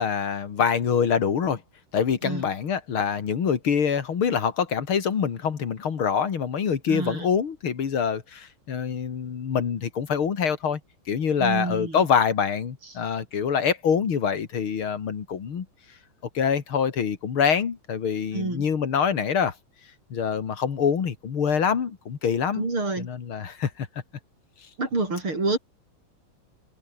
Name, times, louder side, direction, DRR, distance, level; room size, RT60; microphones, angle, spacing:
voice 1, 0.0-1.6 1.9-10.8 11.1-15.7 16.3-19.5 20.1-22.7 23.0-23.9, left 7 dB, 85° left, 3.0 m, -25 dB
voice 2, 6.9-7.3 11.4-12.0 18.3-18.7 22.6-23.1 24.8-25.6, right 3 dB, 80° right, 7.5 m, -27 dB
omnidirectional pair, 2.3 m